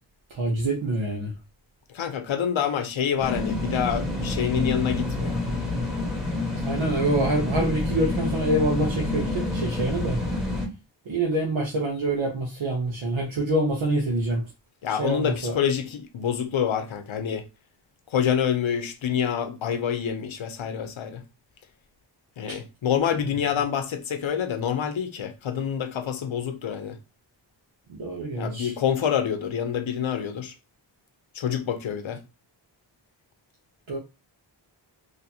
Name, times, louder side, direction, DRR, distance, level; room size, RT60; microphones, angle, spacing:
voice 1, 0.3-1.3 6.6-10.2 11.1-14.4 14.9-15.6 22.5-22.6 27.9-28.7 33.9-34.0, right 1 dB, 80° right, 0.9 m, -26 dB
voice 2, 1.9-5.4 14.8-17.4 18.1-21.2 22.4-27.0 28.3-30.5 31.3-32.2, left 8 dB, 90° left, 0.7 m, -27 dB
sound 1, 3.2-10.7, left 2 dB, ahead, 1.4 m, -28 dB
4.1 x 2.7 x 2.8 m
wide cardioid pair, 85°, 46 cm